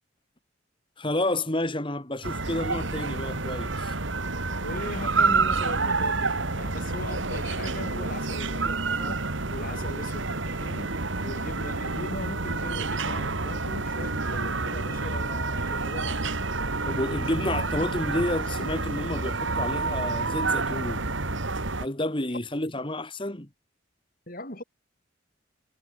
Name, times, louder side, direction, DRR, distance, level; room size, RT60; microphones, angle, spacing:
voice 1, 1.0-3.9 16.9-21.1 21.8-23.5, left 1 dB, 25° left, 2.1 m, -30 dB
sound 1, 2.2-21.9, right 3 dB, 70° right, 2.3 m, -29 dB
voice 2, 4.6-10.9 11.2-16.3 22.3-22.4 24.3-24.6, left 1 dB, 45° left, 8.0 m, -39 dB
head